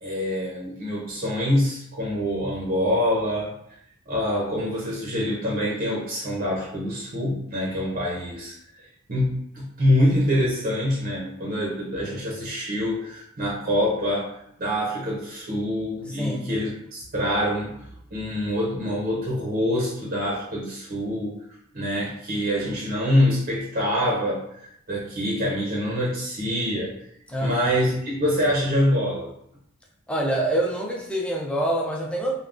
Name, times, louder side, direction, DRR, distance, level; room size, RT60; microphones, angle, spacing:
voice 1, 0.0-3.5 4.1-17.9 18.1-21.4 21.7-24.5 24.9-27.0 27.4-29.3, equal, 40° right, -4 dB, 0.6 m, -25 dB
voice 2, 16.2-16.6 27.3-27.6 30.1-32.3, right 1 dB, 5° left, -1 dB, 0.4 m, -26 dB
3.4 x 2.1 x 2.4 m, 0.74 s
head